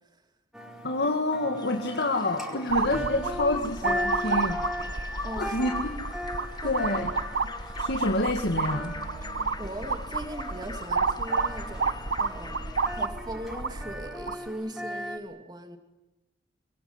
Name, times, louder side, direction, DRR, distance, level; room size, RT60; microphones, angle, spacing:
sound 1, 0.5-15.2, equal, ahead, 4.5 m, -38 dB
voice 1, 0.8-4.6 5.4-6.0 6.6-7.1 7.4-8.9, left 2 dB, 65° left, 2.1 m, -28 dB
sound 2, 1.6-13.1, left 4 dB, 25° left, 1.5 m, -42 dB
sound 3, 2.7-14.5, right 4 dB, 70° right, 1.1 m, -31 dB
voice 2, 5.2-5.8 6.6-6.8 9.2-12.7 12.9-15.8, right 1 dB, 25° right, 2.7 m, -40 dB
25.5 x 22.5 x 9.8 m
head